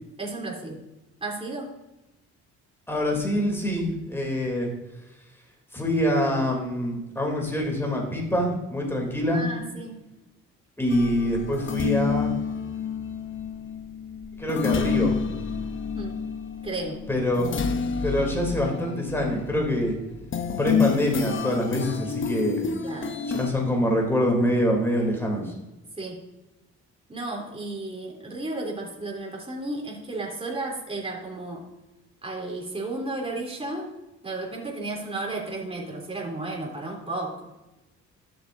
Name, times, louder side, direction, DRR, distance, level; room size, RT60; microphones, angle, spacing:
voice 1, 0.2-0.8 1.2-1.7 9.3-10.0 15.9-16.2 16.6-17.0 22.8-23.2 26.0-26.2 27.1-31.7 32.2-33.9 34.2-37.5, right 2 dB, 20° right, -2 dB, 3.2 m, -33 dB
voice 2, 2.9-4.7 5.7-9.4 10.8-12.3 14.4-15.1 17.1-17.7 18.0-19.9 20.6-22.7 23.3-25.5, left 1 dB, 10° left, 0 dB, 2.9 m, -25 dB
sound 1, 10.9-23.5, left 6 dB, 40° left, 0.8 m, -29 dB
13.0 x 7.4 x 2.6 m, 1.0 s
cardioid pair, 90°, 30 cm